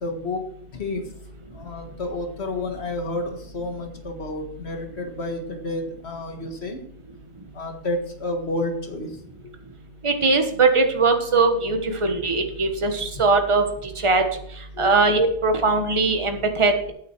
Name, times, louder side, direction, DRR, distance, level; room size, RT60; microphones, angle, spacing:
voice 1, 0.0-1.1 1.5-6.8 7.5-9.1 9.4-9.5 12.3-12.7 13.1-13.2 14.7-14.9, left 2 dB, 90° left, 4 dB, 1.9 m, -30 dB
voice 2, 10.0-13.6 14.0-14.2 14.8-16.9, right 3 dB, 30° right, 5 dB, 1.2 m, -20 dB
9.0 x 9.0 x 4.5 m, 0.66 s
omnidirectional pair, 1.1 m